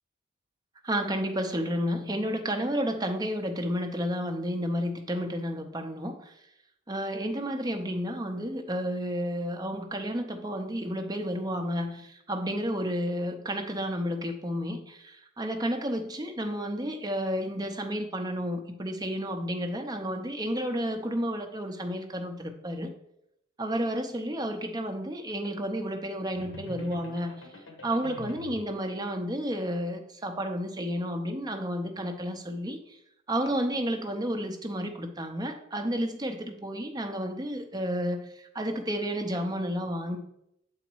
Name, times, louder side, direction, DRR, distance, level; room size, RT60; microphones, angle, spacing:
voice 1, 0.8-6.3 6.9-22.9 23.6-27.4 27.8-33.0 33.3-40.2, equal, 20° right, 4 dB, 0.6 m, -31 dB
sound 1, 26.3-28.7, left 3 dB, 65° left, 1.3 m, -44 dB
7.0 x 4.0 x 4.6 m, 0.77 s
head